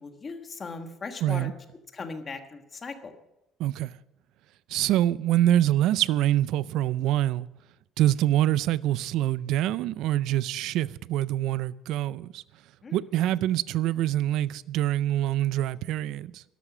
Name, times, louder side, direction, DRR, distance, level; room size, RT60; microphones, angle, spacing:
voice 1, 0.0-1.5 1.9-3.1 12.8-13.0, left 4 dB, 25° left, 1.4 m, -38 dB
voice 2, 1.2-1.5 3.6-3.9 4.7-7.5 8.0-12.4 12.9-16.4, right 13 dB, 70° right, 0.4 m, -25 dB
13.0 x 12.0 x 6.1 m
cardioid pair, 160°, 0 cm